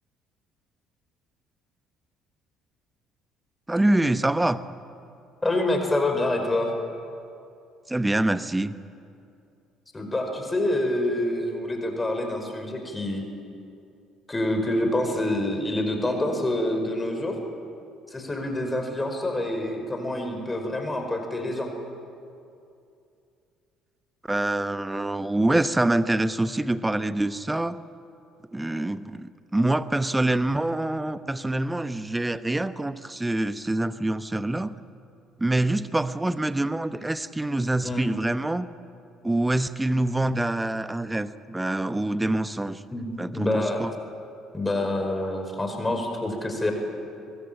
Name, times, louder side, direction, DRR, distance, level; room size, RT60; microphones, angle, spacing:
voice 1, 3.7-4.6 7.9-8.7 24.2-27.8 28.5-34.7 35.4-38.7 39.2-42.8 43.2-43.9, right 1 dB, 10° right, 14 dB, 1.0 m, -25 dB
voice 2, 5.4-6.7 9.9-13.2 14.3-17.4 18.1-21.7 37.8-38.1 42.9-43.8 44.5-46.7, left 1 dB, 15° left, 4 dB, 5.2 m, -27 dB
22.5 x 21.0 x 9.0 m, 2.6 s
figure-of-eight pair, 50°, 0 cm